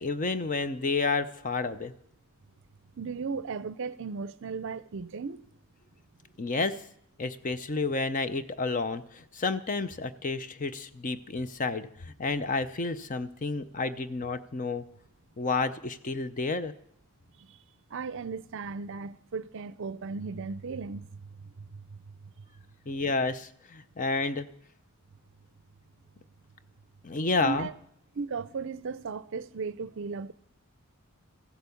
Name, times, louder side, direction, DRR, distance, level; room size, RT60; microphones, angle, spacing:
voice 1, 0.0-1.9 6.4-6.8 7.2-14.8 15.4-16.7 22.9-24.5 27.0-27.7, left 3 dB, 35° left, 0.6 m, -30 dB
voice 2, 3.0-5.4 17.4-17.6 17.9-22.0 27.4-27.7 28.1-30.3, right 5 dB, 55° right, 0.5 m, -36 dB
15.0 x 8.2 x 7.0 m
head